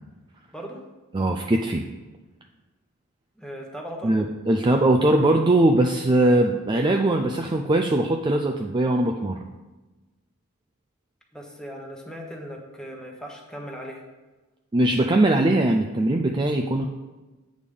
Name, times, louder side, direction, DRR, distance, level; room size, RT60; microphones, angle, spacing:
voice 1, 1.1-1.8 4.0-9.4 14.7-16.9, right 1 dB, 20° right, 3 dB, 0.4 m, -21 dB
voice 2, 3.4-4.1 11.3-14.0, equal, 5° left, 1 dB, 1.2 m, -38 dB
8.4 x 5.0 x 5.3 m, 1.2 s
head